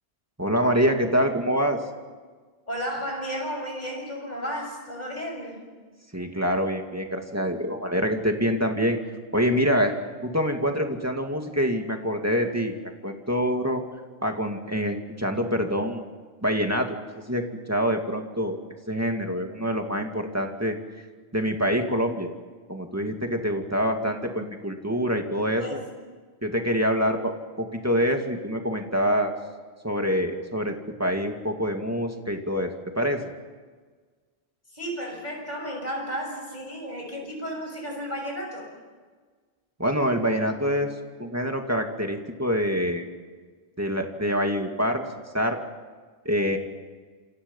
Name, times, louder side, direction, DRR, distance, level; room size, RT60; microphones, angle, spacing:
voice 1, 0.4-1.8 6.1-9.0 9.3-9.9 10.2-12.7 13.0-13.8 14.2-16.1 16.4-17.0 17.3-18.6 18.9-20.7 21.3-22.3 22.7-25.8 26.4-27.3 27.6-29.3 29.8-32.7 33.0-33.2 39.8-40.9 41.2-43.0 43.8-45.0 45.3-45.6 46.2-46.6, equal, 15° right, 3 dB, 2.4 m, -25 dB
voice 2, 2.7-5.6 25.6-25.9 34.7-38.7, equal, 40° left, 1 dB, 7.1 m, -33 dB
28.5 x 28.0 x 5.7 m, 1.5 s
omnidirectional pair, 1.1 m